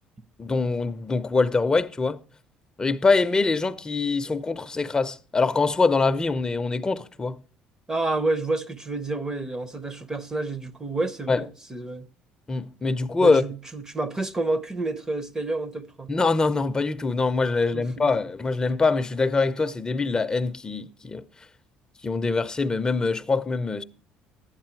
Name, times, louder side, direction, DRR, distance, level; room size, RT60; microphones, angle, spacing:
voice 1, 0.4-2.2 2.8-7.4 11.3-11.4 12.5-13.4 16.1-21.2 22.0-23.8, left 3 dB, 20° left, 0.6 m, -24 dB
voice 2, 7.9-12.1 13.2-16.1 17.7-18.1, right 2 dB, 20° right, 0.8 m, -29 dB
11.5 x 8.9 x 4.5 m
supercardioid pair, 95°, 3 cm